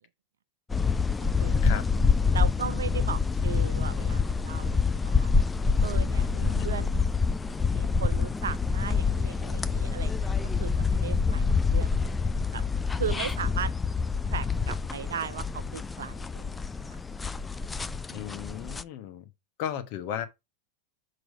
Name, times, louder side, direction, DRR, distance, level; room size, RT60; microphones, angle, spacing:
sound 1, 0.7-18.8, left 5 dB, 10° left, 0.4 m, -27 dB
voice 1, 1.4-1.8 2.3-5.3 5.8-7.0 7.7-12.1 12.5-12.6 13.0-13.7 14.3-16.5, right 8 dB, 65° right, 0.4 m, -37 dB
voice 2, 18.1-19.3 19.6-20.3, left 10 dB, 45° left, 1.1 m, -35 dB
6.4 x 4.8 x 4.6 m
figure-of-eight pair, 90°, 0 cm